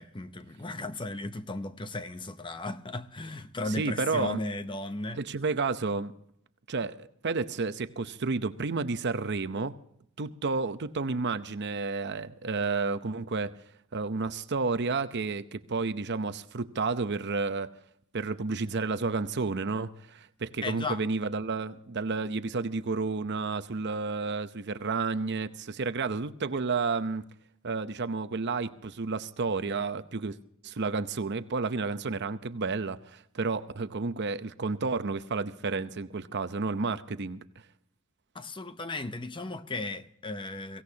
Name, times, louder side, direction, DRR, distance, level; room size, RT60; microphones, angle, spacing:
voice 1, 0.0-5.2 20.6-21.0 38.3-40.8, left 2 dB, 25° left, 0.7 m, -35 dB
voice 2, 3.8-4.4 5.2-6.1 6.7-9.7 10.2-13.5 13.9-17.7 18.1-27.3 27.6-30.4 30.6-37.4, right 4 dB, 55° right, 0.7 m, -31 dB
23.5 x 16.5 x 2.8 m
head